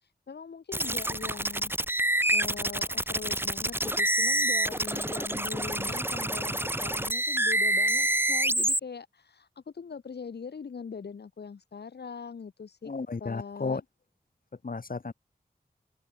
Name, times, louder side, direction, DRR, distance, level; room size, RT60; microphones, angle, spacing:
voice 1, 0.3-1.7 2.3-12.9 13.2-13.8, left 5 dB, 90° left, 5.1 m, -41 dB
sound 1, 0.7-8.8, right 1 dB, 15° right, 2.9 m, -27 dB
voice 2, 12.8-13.8 14.6-15.1, left 4 dB, 60° left, 6.3 m, -33 dB
cardioid pair, 55°, 17 cm